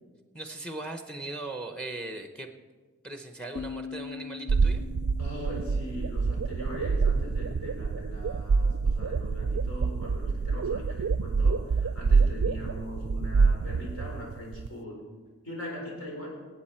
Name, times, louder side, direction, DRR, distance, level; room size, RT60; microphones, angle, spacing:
voice 1, 0.3-2.5 3.0-4.8, right 2 dB, 5° left, 6 dB, 0.8 m, -38 dB
sound 1, 3.6-7.4, left 6 dB, 55° left, 0.4 m, -43 dB
sound 2, 4.5-14.7, right 4 dB, 75° right, 0.4 m, -26 dB
voice 2, 5.2-15.0 15.4-16.4, equal, 80° left, -3 dB, 5.0 m, -40 dB
25.0 x 8.6 x 4.4 m, 1.4 s
head